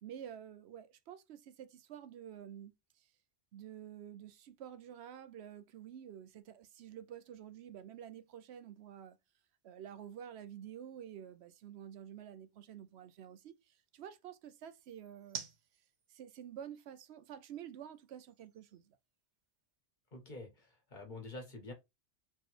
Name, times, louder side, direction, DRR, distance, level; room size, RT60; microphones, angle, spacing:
voice 1, 0.0-3.1 3.5-9.2 9.6-15.4 16.1-19.0, right 9 dB, 75° right, 0.9 m, -50 dB
sound 1, 5.5-19.8, right 6 dB, 50° right, 0.7 m, -57 dB
voice 2, 20.1-21.7, left 2 dB, 45° left, 1.6 m, -47 dB
4.3 x 3.2 x 3.2 m
omnidirectional pair, 1.1 m